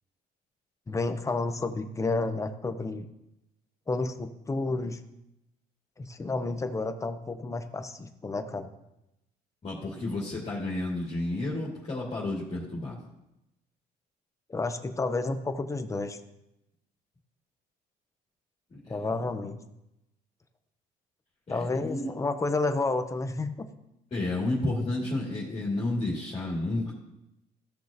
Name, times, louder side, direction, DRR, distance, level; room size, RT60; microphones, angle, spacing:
voice 1, 0.9-3.1 3.9-5.0 6.0-8.7 14.5-16.2 18.9-19.6 21.5-23.7, left 3 dB, 20° left, 8 dB, 0.8 m, -30 dB
voice 2, 9.6-13.0 18.7-19.0 21.5-22.1 24.1-26.9, left 2 dB, 35° left, -5 dB, 2.6 m, -31 dB
15.5 x 6.2 x 2.9 m, 0.89 s
cardioid pair, 110°, 17 cm